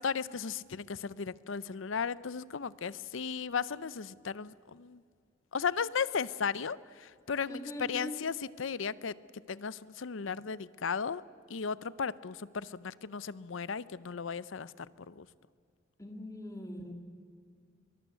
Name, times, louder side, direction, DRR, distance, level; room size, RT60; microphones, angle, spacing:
voice 1, 0.0-5.0 5.5-9.2 9.5-11.2 11.5-15.3, left 6 dB, 65° left, 18 dB, 0.6 m, -35 dB
voice 2, 7.5-8.2 16.0-16.9, equal, 15° left, 3 dB, 1.9 m, -41 dB
23.5 x 20.5 x 8.2 m, 2.1 s
head